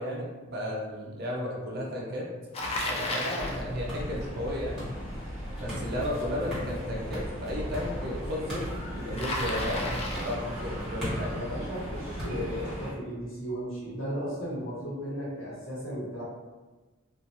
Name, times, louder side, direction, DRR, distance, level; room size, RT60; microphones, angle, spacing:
voice 1, 0.0-2.3 2.8-4.9 5.6-11.4, left 1 dB, 50° right, -2 dB, 0.6 m, -34 dB
Bicycle, 2.5-3.6 9.2-10.4, left 1 dB, 30° left, 0.3 m, -32 dB
sound 1, 3.4-12.9, equal, ahead, 1.3 m, -36 dB
sound 2, 8.6-11.2, left 1 dB, 20° right, 0.9 m, -50 dB
voice 2, 11.3-16.2, equal, 70° left, -6 dB, 1.1 m, -35 dB
2.7 x 2.4 x 2.5 m, 1.2 s
head